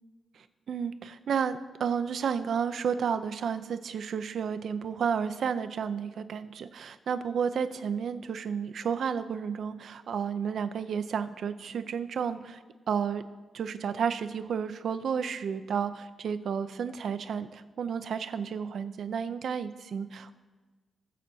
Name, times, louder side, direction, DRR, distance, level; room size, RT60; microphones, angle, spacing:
voice 1, 0.3-13.2 13.5-20.4, right 7 dB, 65° right, 10 dB, 0.5 m, -32 dB
19.0 x 7.4 x 2.7 m, 1.3 s
wide cardioid pair, 160°, 0 cm